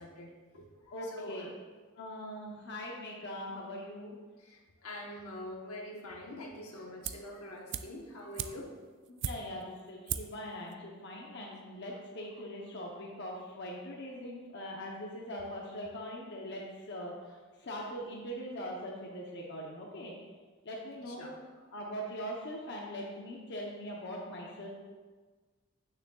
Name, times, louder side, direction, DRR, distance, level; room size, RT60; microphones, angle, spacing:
voice 1, 0.0-1.5 4.4-8.7 21.1-21.4, left 1 dB, 80° left, 0 dB, 1.1 m, -45 dB
voice 2, 0.9-1.5 2.0-4.2 9.1-20.2 20.6-21.4 21.7-24.7, equal, 55° left, -2 dB, 0.8 m, -41 dB
sound 1, 7.0-7.4 7.7-9.7 10.1-10.4 10.7-10.8, right 9 dB, 55° right, 0.3 m, -38 dB
8.8 x 6.5 x 2.3 m, 1.4 s
head